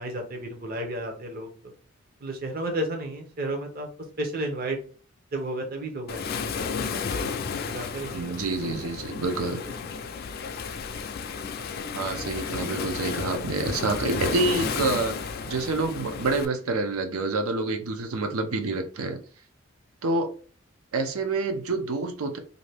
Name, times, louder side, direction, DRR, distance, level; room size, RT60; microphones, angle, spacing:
voice 1, 0.0-1.7 2.2-3.9 4.2-4.8 5.3-8.3 9.5-9.6, right 1 dB, 45° right, 3 dB, 0.6 m, -33 dB
Waves surf, 6.1-16.5, left 5 dB, 45° left, 0.3 m, -32 dB
voice 2, 8.1-9.6 11.9-19.2 20.0-20.3 20.9-22.4, right 3 dB, 85° right, 5 dB, 0.6 m, -27 dB
2.6 x 2.5 x 3.3 m, 0.40 s
head